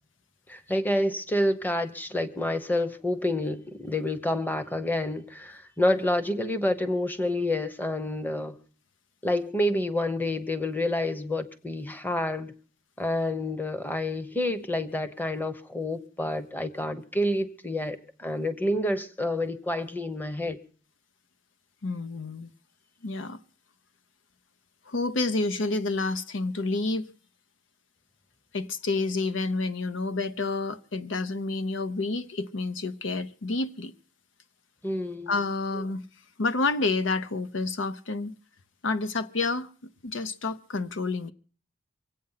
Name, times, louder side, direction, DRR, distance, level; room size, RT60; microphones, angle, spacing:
voice 1, 0.5-8.6 9.2-12.5 13.0-20.6 34.8-35.4 35.7-35.8, left 1 dB, 10° left, 1.0 m, -28 dB
voice 2, 21.8-22.5 23.0-23.4 24.9-27.1 28.5-33.9 35.3-36.0 36.4-38.3 38.8-39.7 40.0-41.3, left 3 dB, 70° left, 0.7 m, -29 dB
24.5 x 8.6 x 5.6 m
head